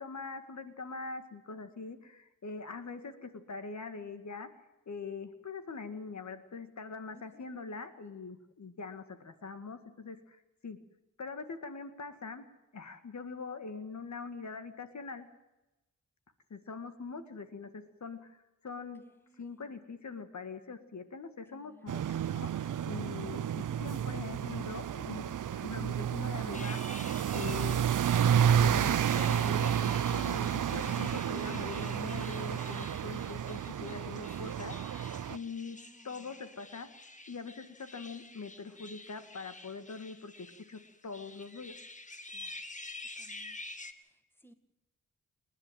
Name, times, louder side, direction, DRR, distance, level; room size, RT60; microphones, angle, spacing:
voice 1, 0.0-4.5 4.9-10.8 11.2-12.5 12.7-15.3 16.5-18.4 18.6-19.1 19.4-26.9 27.3-27.9 28.5-35.8 36.0-36.9 37.3-41.8, left 4 dB, 60° left, 9 dB, 2.0 m, -43 dB
voice 2, 7.1-7.6 19.0-19.8 21.5-22.4 35.7-36.4 42.3-42.6 43.2-43.6 43.9-44.5, equal, 5° left, 9 dB, 2.0 m, -62 dB
sound 1, 21.9-35.4, right 9 dB, 70° right, 0.7 m, -31 dB
sound 2, 26.5-43.9, left 2 dB, 25° left, 1.6 m, -49 dB
28.5 x 10.5 x 9.2 m, 0.99 s
wide cardioid pair, 90°, 32 cm